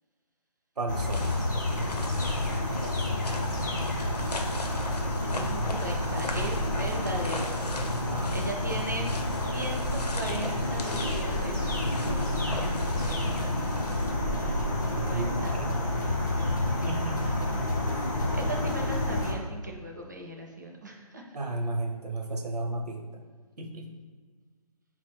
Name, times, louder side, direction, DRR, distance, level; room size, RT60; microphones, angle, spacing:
voice 1, 0.8-1.3 8.0-8.5 14.9-15.7 16.9-17.2 21.3-23.0 23.6-23.9, right 2 dB, 80° right, 3 dB, 0.7 m, -34 dB
sound 1, 0.9-19.3, left 1 dB, 30° left, 0.6 m, -29 dB
sound 2, 1.1-14.1, left 2 dB, 90° left, 0.7 m, -41 dB
voice 2, 5.3-7.5 8.3-9.1 9.4-13.5 14.9-15.6 16.0-16.9 18.3-21.4, right 1 dB, 30° right, 1 dB, 0.4 m, -39 dB
4.0 x 2.1 x 4.4 m, 1.6 s
figure-of-eight pair, 170°, 20 cm